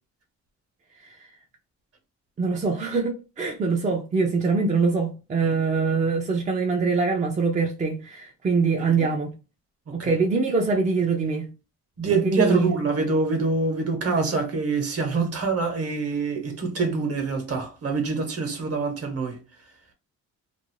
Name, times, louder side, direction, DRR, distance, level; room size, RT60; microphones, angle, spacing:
voice 1, 2.4-9.4 9.9-11.5 12.0-12.8, right 4 dB, 25° right, 0.5 m, -24 dB
voice 2, 12.0-19.4, right 4 dB, 50° right, 1.0 m, -25 dB
2.6 x 2.0 x 3.0 m
cardioid pair, 90°, 30 cm